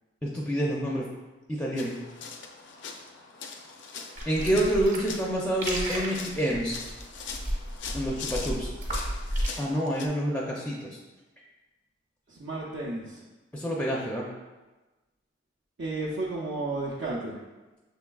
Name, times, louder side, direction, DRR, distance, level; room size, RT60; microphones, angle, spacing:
voice 1, 0.2-1.1 1.5-2.0 4.3-6.8 7.9-8.7 9.6-11.0 13.5-14.3, right 1 dB, 5° left, -3 dB, 0.4 m, -28 dB
sound 1, 1.8-10.1, left 5 dB, 70° left, 0.4 m, -42 dB
sound 2, 4.2-9.5, equal, 40° right, 1.0 m, -33 dB
voice 2, 12.3-13.2 15.8-17.4, right 2 dB, 70° right, -6 dB, 0.6 m, -32 dB
6.2 x 3.5 x 2.3 m, 1.2 s
head